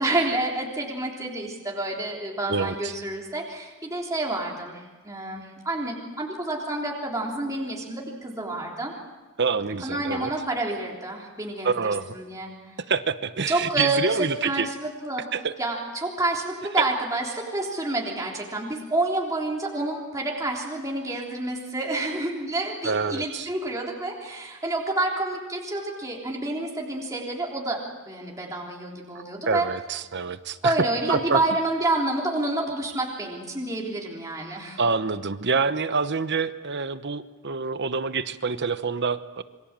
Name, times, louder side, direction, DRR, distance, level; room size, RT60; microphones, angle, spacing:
voice 1, 0.0-8.9 9.8-12.5 13.5-15.2 15.6-29.7 30.6-34.8, right 2 dB, 15° right, -2 dB, 3.5 m, -28 dB
voice 2, 2.5-2.9 9.4-10.3 11.6-12.1 12.9-14.7 15.3-15.5 22.8-23.5 29.1-30.7 31.1-31.4 34.8-39.4, right 4 dB, 50° right, 12 dB, 1.0 m, -27 dB
27.0 x 24.0 x 7.5 m, 1.3 s
head